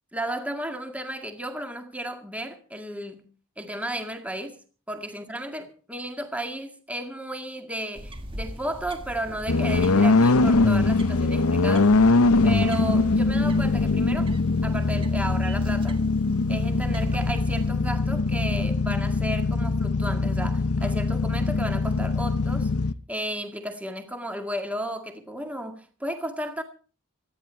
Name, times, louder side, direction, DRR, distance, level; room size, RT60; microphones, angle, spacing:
voice 1, 0.1-3.3 3.6-4.6 4.9-11.9 12.4-14.3 14.6-16.0 16.5-22.7 23.1-26.6, right 1 dB, 5° right, 2.0 m, -33 dB
sound 1, 8.0-17.7, equal, 25° right, 1.7 m, -40 dB
sound 2, 9.5-22.9, left 3 dB, 90° left, 0.8 m, -22 dB
24.5 x 10.5 x 4.5 m
head